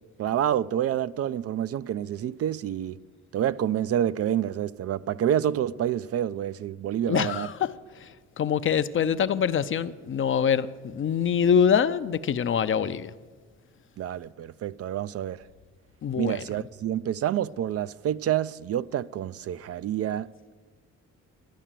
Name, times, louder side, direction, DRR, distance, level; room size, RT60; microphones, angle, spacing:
voice 1, 0.2-3.0 3.3-7.5 14.0-15.4 16.2-20.3, right 10 dB, 50° right, 0.4 m, -28 dB
voice 2, 7.1-13.1 16.0-16.4, left 7 dB, 45° left, 0.6 m, -25 dB
12.5 x 10.0 x 7.5 m
cardioid pair, 90°, 30 cm